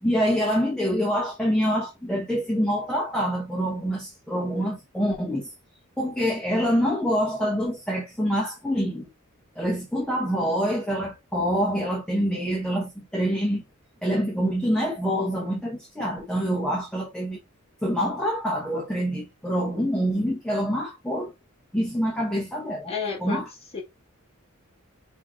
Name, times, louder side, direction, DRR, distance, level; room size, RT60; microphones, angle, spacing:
voice 1, 0.0-5.5 6.0-9.1 9.6-13.6 14.0-17.4 17.8-21.3 21.7-22.9 23.2-23.4, equal, 5° left, 0.9 m, -26 dB
voice 2, 22.9-23.5 23.7-23.8, left 5 dB, 30° left, 1.8 m, -30 dB
5.3 x 3.0 x 2.3 m
head